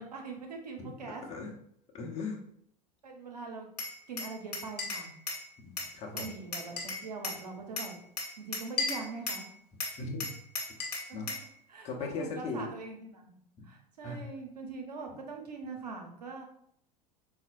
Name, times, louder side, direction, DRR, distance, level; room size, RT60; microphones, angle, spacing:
voice 1, 0.0-1.2 3.0-3.7 4.1-5.1 6.1-8.0 8.4-9.5 11.7-13.4 13.6-16.5, right 4 dB, 80° right, 2 dB, 0.7 m, -42 dB
voice 2, 1.9-2.4 5.6-6.3 10.0-10.3 11.1-11.3 11.8-12.6 14.0-14.2, left 3 dB, 35° left, 0 dB, 0.8 m, -38 dB
Glass, 3.8-5.5 5.8-7.4 7.8-9.5 9.8-11.5, left 3 dB, 80° left, 0.9 m, -36 dB
4.1 x 2.1 x 2.5 m, 0.68 s
figure-of-eight pair, 75°, 20 cm